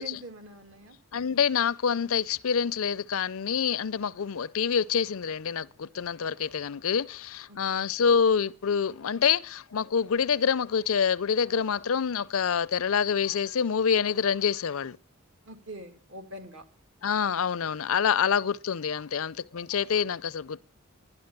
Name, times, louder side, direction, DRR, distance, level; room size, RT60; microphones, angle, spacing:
voice 1, 0.0-1.0 7.5-7.9 15.5-16.6, right 1 dB, 60° right, 2.1 m, -44 dB
voice 2, 1.1-15.0 17.0-20.6, left 7 dB, 70° left, 0.5 m, -26 dB
12.0 x 10.5 x 6.7 m
head